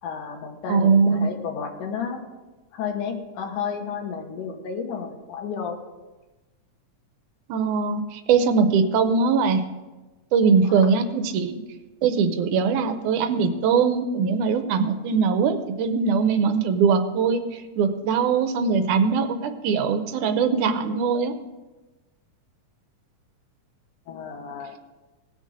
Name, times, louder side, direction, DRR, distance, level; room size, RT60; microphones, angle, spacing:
voice 1, 0.0-2.2 2.7-5.8 10.6-10.9 24.1-24.8, left 6 dB, 75° left, 4 dB, 2.7 m, -32 dB
voice 2, 0.7-1.3 7.5-9.6 10.3-11.6 12.0-21.3, right 5 dB, 80° right, 8 dB, 2.2 m, -21 dB
18.0 x 6.5 x 5.0 m, 1.2 s
omnidirectional pair, 3.7 m